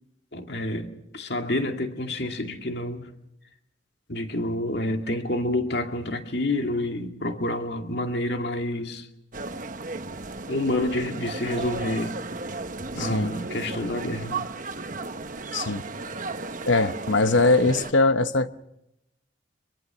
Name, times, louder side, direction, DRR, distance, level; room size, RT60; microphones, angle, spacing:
voice 1, 0.3-0.9 1.1-3.1 4.1-9.0 10.5-12.2 12.9-14.5, left 1 dB, 60° left, 2.2 m, -28 dB
sound 1, 9.3-17.9, right 3 dB, 45° right, 1.1 m, -34 dB
voice 2, 13.0-13.4 15.5-15.8 16.7-18.5, left 3 dB, 80° left, 1.1 m, -21 dB
24.0 x 23.0 x 6.2 m
head